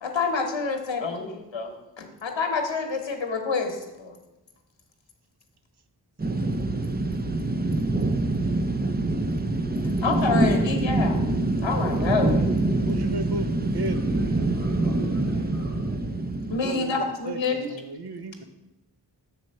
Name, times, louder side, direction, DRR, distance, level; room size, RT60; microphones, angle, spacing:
voice 1, 0.0-4.2 10.0-11.2 11.6-12.5 16.5-17.7, left 4 dB, 90° left, 4 dB, 0.9 m, -28 dB
sound 1, 6.2-16.6, right 2 dB, 20° right, 0.6 m, -25 dB
voice 2, 12.9-14.0 16.6-18.5, right 2 dB, 65° right, 9 dB, 0.7 m, -34 dB
voice 3, 13.9-15.8, right 1 dB, 85° right, -7 dB, 2.0 m, -48 dB
6.6 x 4.3 x 6.4 m, 0.99 s
wide cardioid pair, 40°, 44 cm